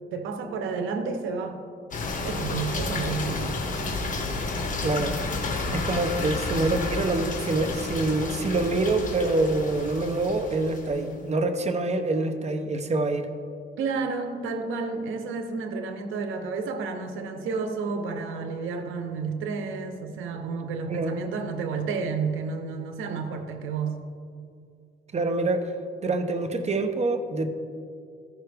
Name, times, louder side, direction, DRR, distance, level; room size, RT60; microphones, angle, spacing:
voice 1, 0.1-1.6 2.2-3.6 5.9-6.0 13.8-24.0, right 4 dB, 85° right, 7 dB, 0.8 m, -31 dB
sound 1, 1.9-11.1, left 3 dB, 40° left, 1.3 m, -31 dB
voice 2, 4.8-5.2 5.7-13.3 20.9-21.1 25.1-25.8 26.0-27.5, right 2 dB, 35° right, 7 dB, 0.8 m, -26 dB
14.0 x 5.7 x 3.4 m, 2.3 s
cardioid pair, 90°, 20 cm